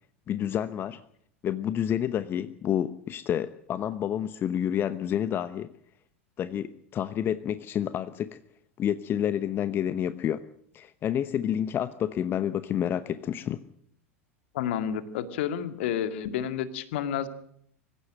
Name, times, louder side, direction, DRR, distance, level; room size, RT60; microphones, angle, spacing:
voice 1, 0.3-1.0 1.4-5.7 6.4-8.4 8.8-10.4 10.7-13.6, left 10 dB, 30° left, 14 dB, 0.9 m, -29 dB
voice 2, 14.5-17.3, left 9 dB, 55° left, 11 dB, 2.1 m, -30 dB
25.0 x 15.5 x 7.7 m, 0.67 s
figure-of-eight pair, 85°, 7 cm